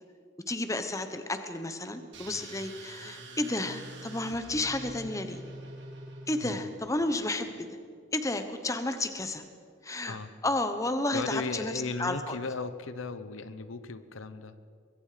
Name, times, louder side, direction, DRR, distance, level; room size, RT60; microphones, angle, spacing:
voice 1, 0.5-5.4 6.3-7.8 8.1-9.4 9.8-10.2 10.4-11.7 12.0-12.4, left 2 dB, 15° left, 8 dB, 1.1 m, -32 dB
sound 1, 2.1-6.9, right 2 dB, 60° right, 3.4 m, -45 dB
voice 2, 11.1-14.6, left 3 dB, 80° left, 12 dB, 1.0 m, -36 dB
24.0 x 21.5 x 5.1 m, 2.3 s
head